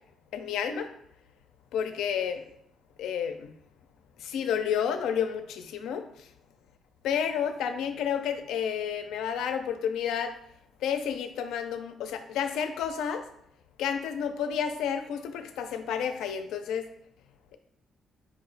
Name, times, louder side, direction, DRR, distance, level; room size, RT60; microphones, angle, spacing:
voice 1, 0.3-0.9 1.7-2.4 3.0-3.5 4.2-6.1 7.0-10.3 10.8-13.2 13.8-16.9, left 8 dB, 85° left, 7 dB, 0.4 m, -30 dB
4.7 x 2.1 x 3.9 m, 0.73 s
cardioid pair, 90°, 0 cm